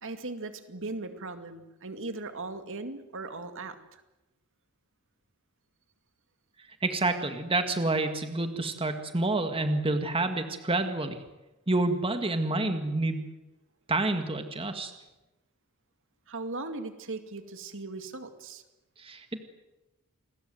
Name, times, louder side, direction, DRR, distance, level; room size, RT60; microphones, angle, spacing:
voice 1, 0.0-4.0 16.3-18.6, right 3 dB, 60° right, 8 dB, 2.3 m, -38 dB
voice 2, 6.8-11.2 11.7-13.3 13.9-14.9 19.0-19.4, right 2 dB, 25° right, 7 dB, 1.9 m, -28 dB
28.5 x 21.5 x 7.9 m, 1.0 s
head